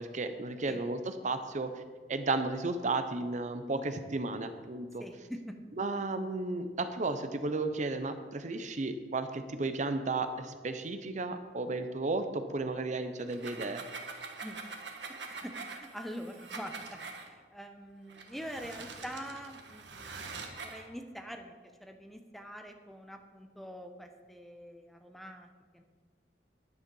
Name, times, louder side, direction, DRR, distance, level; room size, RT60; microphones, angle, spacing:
voice 1, 0.0-1.8 2.1-5.0 5.8-13.8, right 3 dB, 45° right, 9 dB, 0.7 m, -33 dB
voice 2, 5.0-5.6 14.4-14.6 15.2-21.5 21.8-25.8, equal, ahead, 5 dB, 0.7 m, -45 dB
sound 1, 13.2-17.3 18.1-20.9, right 4 dB, 85° right, 1.3 m, -44 dB
10.0 x 9.4 x 5.4 m, 1.5 s
head